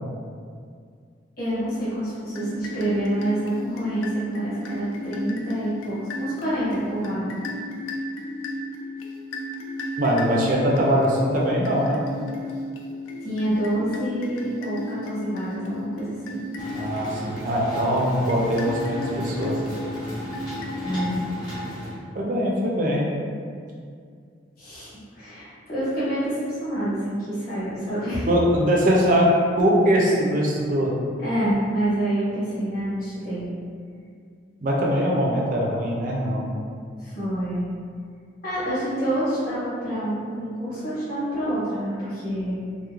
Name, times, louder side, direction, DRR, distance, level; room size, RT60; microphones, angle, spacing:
voice 1, 1.4-7.3 13.2-16.4 20.8-21.1 24.6-24.9 25.1-28.3 31.2-33.4 37.0-37.6 38.4-42.6, right 1 dB, 50° left, -12 dB, 1.2 m, -27 dB
sound 1, 2.3-21.5, left 1 dB, 85° left, 0.3 m, -35 dB
voice 2, 10.0-12.0 16.7-19.5 22.1-23.0 28.3-29.3 29.6-30.9 34.6-36.5, equal, 45° right, -3 dB, 0.4 m, -22 dB
sound 2, 16.6-21.9, equal, 25° left, 0.6 m, -34 dB
2.9 x 2.0 x 2.4 m, 2.2 s
head